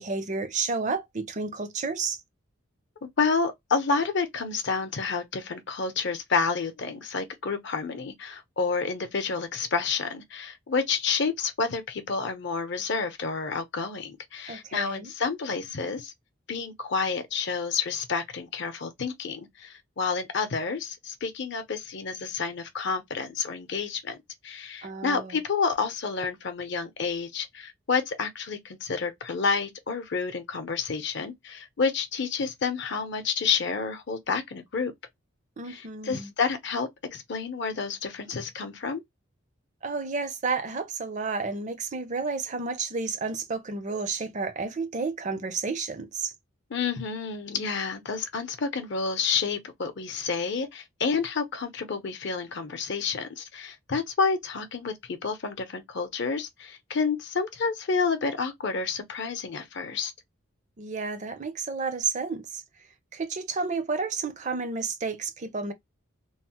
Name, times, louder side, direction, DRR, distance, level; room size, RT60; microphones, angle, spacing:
voice 1, 0.0-2.2 14.5-15.1 24.8-25.4 35.6-36.3 39.8-46.3 60.8-62.6 63.1-65.7, right 4 dB, 35° right, 0.5 m, -31 dB
voice 2, 3.0-16.1 16.5-24.2 24.4-34.9 35.7-39.0 46.7-60.1, left 5 dB, 55° left, 0.6 m, -29 dB
3.0 x 2.0 x 2.8 m
head